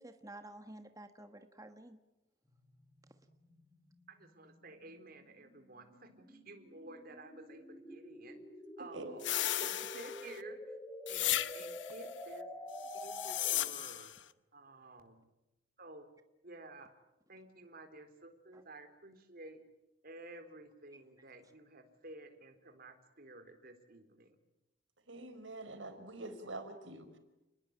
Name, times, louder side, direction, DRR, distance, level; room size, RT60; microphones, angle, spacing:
voice 1, 0.0-2.0 18.5-18.6 20.9-21.0, right 1 dB, 20° right, 7 dB, 1.4 m, -51 dB
sound 1, 2.5-13.8, left 1 dB, 10° left, 4.2 m, -49 dB
voice 2, 4.1-8.4 8.8-9.3 9.6-10.6 11.1-12.5 13.0-14.1 14.5-15.3 15.8-16.1 16.4-16.9 17.3-19.6 20.0-24.4, right 2 dB, 55° right, 7 dB, 4.0 m, -53 dB
voice 3, 8.8-9.5 25.1-27.2, right 2 dB, 85° right, 8 dB, 4.7 m, -46 dB
sound 2, 9.2-10.4 11.1-11.9 12.9-14.2, left 13 dB, 70° left, 1.0 m, -35 dB
30.0 x 20.5 x 8.9 m, 0.97 s
head